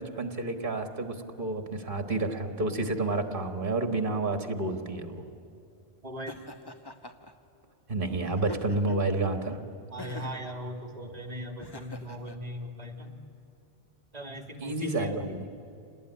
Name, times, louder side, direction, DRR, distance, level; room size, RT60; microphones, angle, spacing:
voice 1, 0.0-5.2 7.9-9.6 14.6-15.4, right 2 dB, 55° right, 7 dB, 1.9 m, -30 dB
voice 2, 6.0-6.4 9.9-13.1 14.1-15.3, equal, 40° right, 5 dB, 2.5 m, -39 dB
Laughter, 6.3-7.3 8.4-9.1 10.0-10.5 11.6-12.4, left 2 dB, 25° left, 1.1 m, -43 dB
27.0 x 19.0 x 10.0 m, 2.6 s
omnidirectional pair, 1.1 m